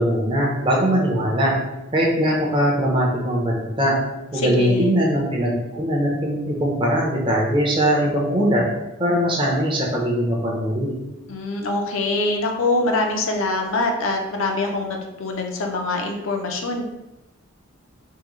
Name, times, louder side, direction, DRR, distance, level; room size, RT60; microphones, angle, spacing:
voice 1, 0.0-1.6 1.9-4.0 4.3-8.6 9.0-10.9, equal, 25° right, -2 dB, 0.6 m, -21 dB
voice 2, 4.3-4.9 11.3-16.8, left 2 dB, 70° left, 2 dB, 0.5 m, -24 dB
3.6 x 2.1 x 3.0 m, 0.98 s
head